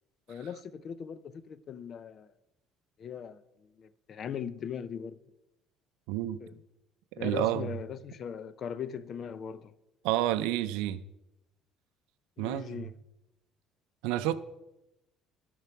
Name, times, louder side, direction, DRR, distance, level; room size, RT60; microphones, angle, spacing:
voice 1, 0.3-2.3 3.0-5.2 6.4-6.5 7.2-9.7 12.4-12.9, left 8 dB, 45° left, 0.5 m, -39 dB
voice 2, 6.1-6.4 7.2-7.7 10.0-11.0 12.4-12.8 14.0-14.3, right 13 dB, 90° right, 0.4 m, -29 dB
12.5 x 4.7 x 5.9 m
cardioid pair, 115°, 0 cm